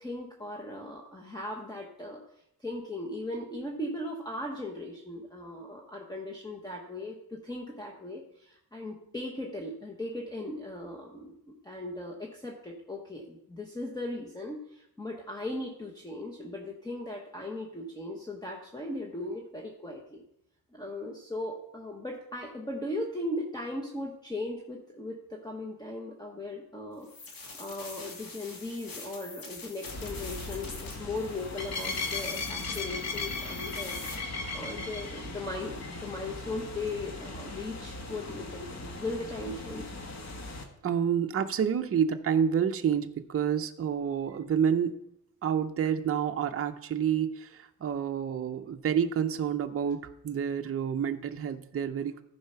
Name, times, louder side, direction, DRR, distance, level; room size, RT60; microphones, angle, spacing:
voice 1, 0.0-2.2 2.6-20.2 20.7-27.1 27.6-34.0 34.5-40.0, left 2 dB, 10° left, 0 dB, 1.1 m, -38 dB
sound 1, 27.0-34.1, left 3 dB, 75° left, 2.3 m, -45 dB
sound 2, 29.9-40.6, left 3 dB, 45° left, 1.4 m, -38 dB
voice 2, 40.8-45.0 45.4-52.2, right 8 dB, 40° right, 6 dB, 0.6 m, -29 dB
14.0 x 4.8 x 5.6 m, 0.76 s
wide cardioid pair, 145°, 36 cm